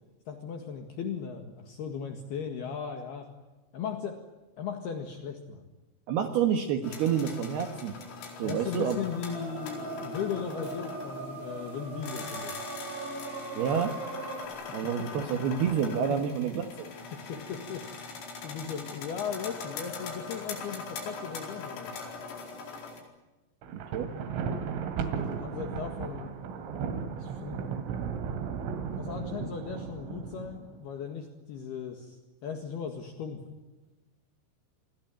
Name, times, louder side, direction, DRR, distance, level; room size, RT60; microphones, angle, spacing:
voice 1, 0.3-3.3 3.7-4.2 4.6-5.7 8.4-12.6 15.9-16.0 17.1-17.9 18.4-21.9 25.3-26.4 27.2-27.6 29.0-33.4, left 7 dB, 60° left, 5 dB, 3.4 m, -37 dB
voice 2, 6.1-8.0 8.4-9.0 13.5-13.9 14.7-16.9 23.7-24.1, right 8 dB, 65° right, 6 dB, 2.9 m, -28 dB
sound 1, 6.8-23.0, left 4 dB, 80° left, 7.1 m, -42 dB
sound 2, 9.3-14.5, right 4 dB, 50° right, 6.0 m, -40 dB
Thunder, 23.6-30.9, right 6 dB, 85° right, 4.9 m, -35 dB
28.5 x 21.5 x 9.0 m, 1.1 s
omnidirectional pair, 5.8 m